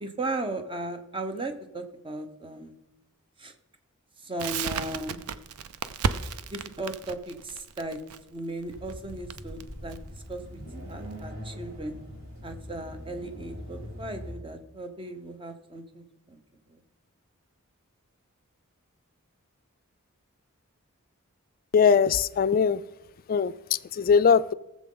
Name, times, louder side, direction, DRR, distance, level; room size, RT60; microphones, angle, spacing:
voice 1, 0.0-2.7 3.4-3.5 4.2-5.2 6.5-8.0 8.3-10.0 10.3-10.6 10.9-12.0 12.4-16.4 16.7-16.8, right 2 dB, 25° right, 0.9 m, -36 dB
Crackle, 4.4-11.2, right 5 dB, 80° right, 0.6 m, -34 dB
sound 1, 8.6-14.3, equal, 60° right, 3.5 m, -42 dB
voice 2, 21.7-22.8 23.3-23.5 23.9-24.5, left 6 dB, 40° left, 0.4 m, -20 dB
18.0 x 7.4 x 3.9 m
head